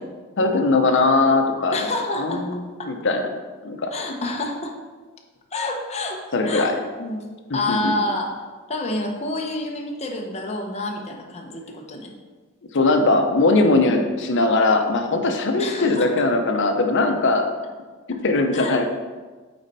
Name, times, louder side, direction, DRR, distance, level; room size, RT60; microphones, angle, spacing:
voice 1, 0.4-1.9 2.2-3.2 3.6-3.9 6.3-6.8 7.5-7.9 12.7-17.4 18.2-18.9, left 3 dB, 60° left, 5 dB, 0.8 m, -20 dB
voice 2, 1.7-2.9 3.9-4.7 5.5-7.2 7.5-8.3 8.7-12.1 15.6-16.2 18.5-18.8, left 2 dB, 30° left, 1 dB, 0.9 m, -28 dB
8.7 x 4.2 x 4.1 m, 1.4 s
head